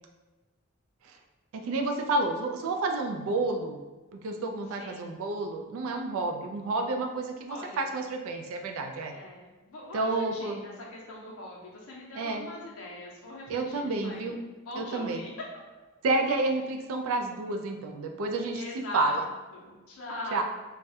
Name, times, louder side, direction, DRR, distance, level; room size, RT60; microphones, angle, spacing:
voice 1, 1.7-3.8 4.1-9.2 9.9-10.6 12.2-12.5 13.5-14.4 14.8-15.2 16.0-18.6 18.9-19.3 20.3-20.4, right 2 dB, 80° right, 4 dB, 0.3 m, -30 dB
voice 2, 4.7-5.2 7.5-7.9 9.1-14.4 14.6-15.3 18.5-20.4, left 1 dB, 90° left, -3 dB, 0.5 m, -42 dB
2.3 x 2.0 x 2.7 m, 1.2 s
head